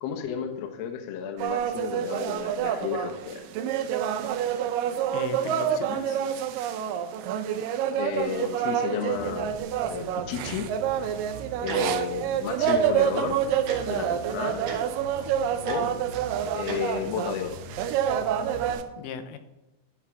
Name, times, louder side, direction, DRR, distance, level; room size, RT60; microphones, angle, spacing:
voice 1, 0.0-3.4 7.9-9.6 9.9-10.7 11.6-13.4 13.9-14.6 15.6-15.9 16.5-17.6, left 8 dB, 70° left, 4 dB, 1.7 m, -32 dB
sound 1, 1.4-18.8, right 9 dB, 90° right, 2.3 m, -28 dB
voice 2, 5.1-6.2 19.0-19.4, left 7 dB, 85° left, 9 dB, 2.3 m, -37 dB
Bass guitar, 9.1-18.7, equal, 35° right, 2.5 m, -45 dB
Tick-tock, 11.6-11.8 12.6-12.8 13.7-13.8 14.6-14.8 15.6-15.8 16.7-16.8, right 5 dB, 65° right, 2.8 m, -35 dB
11.5 x 4.7 x 6.0 m, 0.99 s
omnidirectional pair, 3.8 m